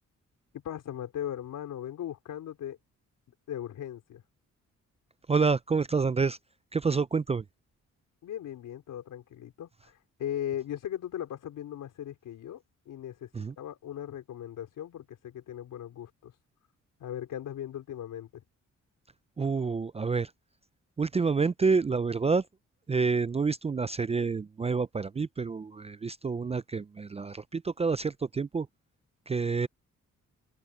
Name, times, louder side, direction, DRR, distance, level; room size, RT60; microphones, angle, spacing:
voice 1, 0.6-2.8 3.5-4.2 8.2-13.3 13.6-16.3 17.0-18.4, left 11 dB, 85° left, 4.0 m, -38 dB
voice 2, 5.3-6.4 6.7-7.4 13.3-13.5 19.4-20.3 21.0-22.5 22.9-28.7 29.3-29.7, right 4 dB, 20° right, 0.4 m, -28 dB
open air
cardioid pair, 95°, 31 cm